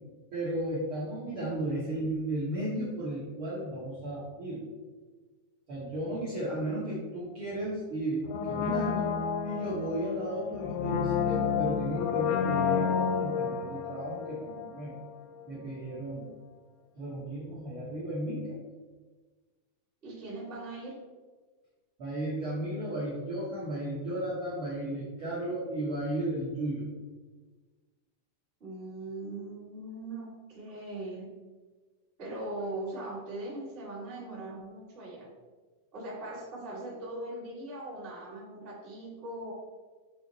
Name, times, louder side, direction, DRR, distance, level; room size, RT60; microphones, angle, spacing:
voice 1, 0.3-4.6 5.7-9.1 9.4-14.9 15.5-16.3 16.9-18.6 22.0-26.9, right 1 dB, 75° right, -8 dB, 1.2 m, -34 dB
Brass instrument, 8.3-15.1 15.4-15.5, left 7 dB, 85° left, 2.0 m, -30 dB
voice 2, 20.0-20.9 28.6-31.3 32.2-35.3 35.9-39.5, right 2 dB, 35° right, -8 dB, 0.9 m, -40 dB
6.9 x 3.5 x 4.0 m, 1.4 s
omnidirectional pair, 4.3 m